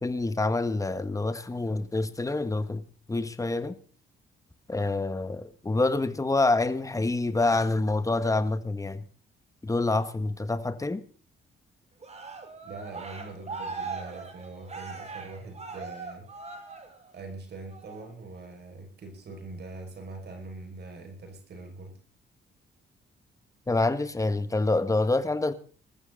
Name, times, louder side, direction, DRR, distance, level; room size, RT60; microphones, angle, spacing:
voice 1, 0.0-3.8 4.7-9.0 9.6-11.0 23.7-25.5, left 2 dB, 15° left, 1.6 m, -27 dB
Cheering, 12.0-17.3 17.7-18.1, right 4 dB, 35° right, 5.0 m, -40 dB
voice 2, 12.6-16.3 17.1-22.0, right 3 dB, 55° right, 5.6 m, -43 dB
20.5 x 14.0 x 3.9 m
cardioid pair, 90°, 20 cm